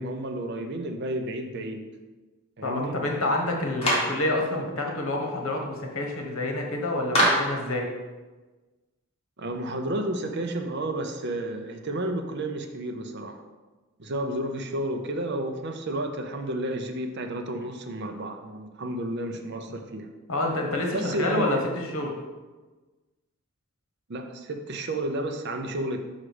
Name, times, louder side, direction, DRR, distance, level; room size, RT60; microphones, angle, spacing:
voice 1, 0.0-1.9 2.6-3.0 9.4-13.4 14.0-20.1 20.9-21.6 24.1-26.0, right 1 dB, 55° right, 5 dB, 0.7 m, -31 dB
voice 2, 2.6-7.9 20.3-22.1, left 2 dB, 75° left, 1 dB, 1.2 m, -28 dB
Clapping, 3.8-4.2 7.1-7.6, equal, 30° left, 1.6 m, -22 dB
5.7 x 4.9 x 5.0 m, 1.2 s
head